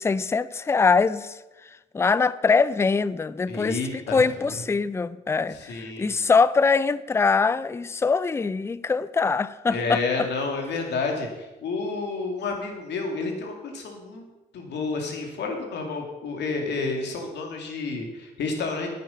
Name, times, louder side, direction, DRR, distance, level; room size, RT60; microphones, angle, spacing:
voice 1, 0.0-1.4 1.9-10.3, left 4 dB, 15° left, 0.4 m, -23 dB
voice 2, 3.5-4.5 5.5-6.1 9.7-14.3 14.5-18.9, left 3 dB, 75° left, 2.5 m, -30 dB
9.6 x 9.4 x 5.7 m
cardioid pair, 95°, 18 cm